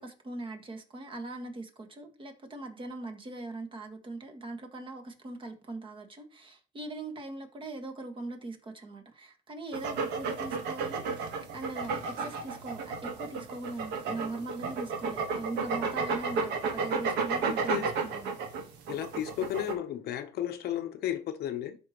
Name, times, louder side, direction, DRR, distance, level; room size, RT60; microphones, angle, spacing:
voice 1, 0.0-18.7, right 2 dB, 30° right, 1.6 m, -41 dB
sound 1, 9.7-19.7, right 4 dB, 85° right, 1.3 m, -32 dB
voice 2, 17.4-17.9 18.9-21.8, left 11 dB, 70° left, 0.8 m, -34 dB
12.5 x 4.3 x 3.0 m
cardioid pair, 110°, 17 cm